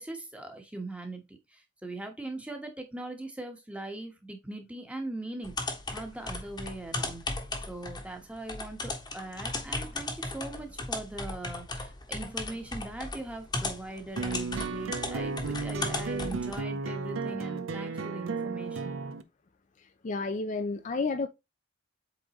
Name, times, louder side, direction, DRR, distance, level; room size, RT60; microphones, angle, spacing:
voice 1, 0.0-5.5 5.9-19.0, right 2 dB, 5° right, 1.3 m, -40 dB
sound 1, 5.4-16.6, left 2 dB, 20° left, 1.2 m, -36 dB
sound 2, 14.2-19.2, right 4 dB, 80° right, 0.7 m, -34 dB
voice 2, 20.0-21.3, left 3 dB, 40° left, 0.5 m, -30 dB
8.1 x 3.8 x 3.0 m
head